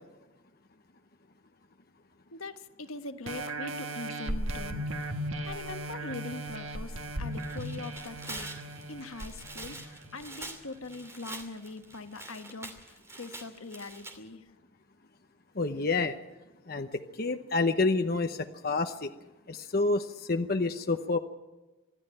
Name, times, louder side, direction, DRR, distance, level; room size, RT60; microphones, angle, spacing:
voice 1, 2.3-4.9 5.4-8.5 8.9-14.5, left 3 dB, 80° left, 8 dB, 1.3 m, -42 dB
sound 1, 3.3-10.4 11.0-11.1, right 1 dB, 70° right, 1.6 m, -37 dB
Tearing, 7.3-14.1, right 2 dB, 15° right, 2.6 m, -45 dB
voice 2, 15.6-16.1 16.7-19.1 19.5-21.2, left 3 dB, 45° left, 7 dB, 0.8 m, -28 dB
25.5 x 11.5 x 8.9 m, 1.1 s
head